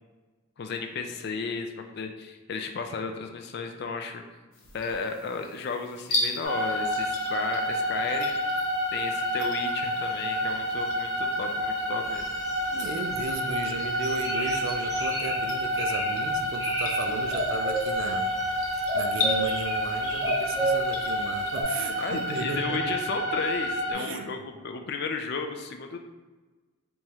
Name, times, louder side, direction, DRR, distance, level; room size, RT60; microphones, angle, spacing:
voice 1, 0.6-4.2 4.7-8.4 8.9-12.3 22.0-26.0, left 4 dB, 50° left, 4 dB, 0.3 m, -34 dB
sound 1, 4.5-22.5, left 2 dB, 80° left, 0.7 m, -39 dB
sound 2, 6.4-23.9, equal, ahead, 1.3 m, -29 dB
sound 3, 12.1-13.4 13.8-15.4 15.8-16.1 16.5-17.0 17.2-18.5 18.9-21.0 21.5-21.6, right 1 dB, 15° right, 0.7 m, -31 dB
voice 2, 12.7-18.3 18.9-23.0 23.9-24.3, right 4 dB, 65° right, 6 dB, 0.3 m, -35 dB
3.5 x 3.0 x 2.8 m, 1.3 s
head